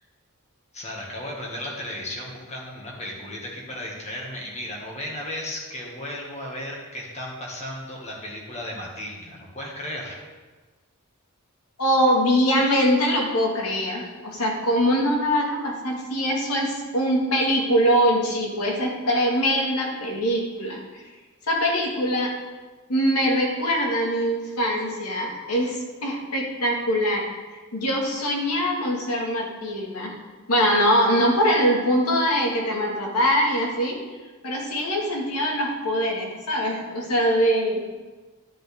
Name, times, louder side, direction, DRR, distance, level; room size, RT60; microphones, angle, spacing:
voice 1, 0.7-10.2, left 1 dB, 30° left, -2 dB, 1.8 m, -35 dB
voice 2, 11.8-20.8 21.5-22.3 22.9-27.2 27.7-30.1 30.5-34.0 34.4-37.8, equal, 90° left, -1 dB, 1.9 m, -23 dB
10.5 x 7.5 x 3.5 m, 1.3 s
head